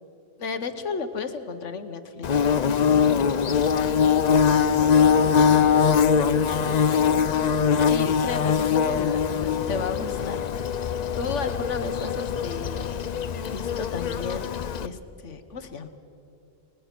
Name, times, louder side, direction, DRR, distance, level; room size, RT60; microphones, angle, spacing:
voice 1, 0.4-2.4 7.8-10.4 11.2-13.1 13.4-14.5 14.8-15.9, left 4 dB, 85° left, 9 dB, 1.5 m, -33 dB
Bird / Buzz, 2.2-14.9, left 7 dB, 50° left, 0.6 m, -22 dB
voice 2, 3.0-3.7 4.0-4.1 4.6-7.5, right 1 dB, 40° right, 0 dB, 2.7 m, -39 dB
28.5 x 20.0 x 6.1 m, 2.7 s
omnidirectional pair, 1.2 m